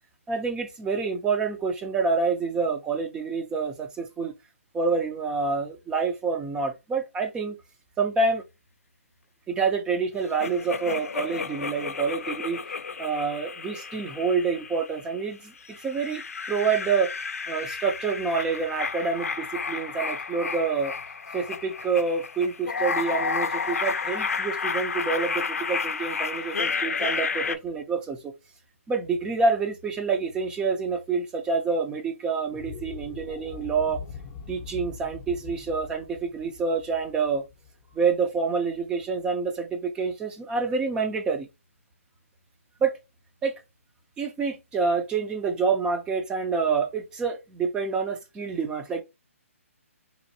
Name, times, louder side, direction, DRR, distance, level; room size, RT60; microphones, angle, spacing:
voice 1, 0.3-4.3 4.7-7.6 8.0-8.4 9.5-12.6 13.0-16.2 16.5-17.1 17.5-20.9 21.3-28.3 28.9-34.0 34.5-37.4 37.9-41.5 42.8-42.9 43.4-43.5 44.2-49.0, right 4 dB, 10° right, 0.5 m, -27 dB
sound 1, 10.4-15.1 15.6-27.6, left 5 dB, 85° left, 0.4 m, -31 dB
sound 2, 32.4-38.8, left 6 dB, 25° left, 0.7 m, -42 dB
4.1 x 2.5 x 2.7 m
hypercardioid pair, 145°, 8 cm